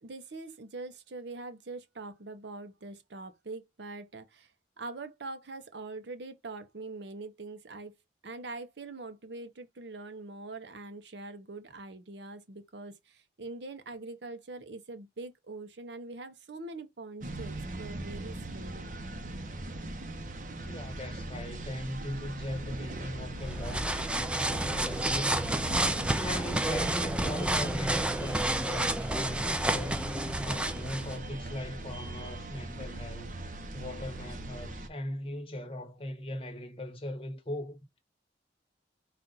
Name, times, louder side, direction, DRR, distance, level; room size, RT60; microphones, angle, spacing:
voice 1, 0.0-4.5 4.8-7.9 8.2-18.9, right 3 dB, 80° right, 0.8 m, -43 dB
sound 1, 17.2-34.9, right 1 dB, 45° right, 0.7 m, -40 dB
voice 2, 20.6-25.6 26.1-33.4 33.7-37.8, left 1 dB, 30° left, 0.9 m, -39 dB
sound 2, 23.4-31.2, right 1 dB, 5° right, 0.3 m, -30 dB
4.2 x 2.5 x 3.9 m
head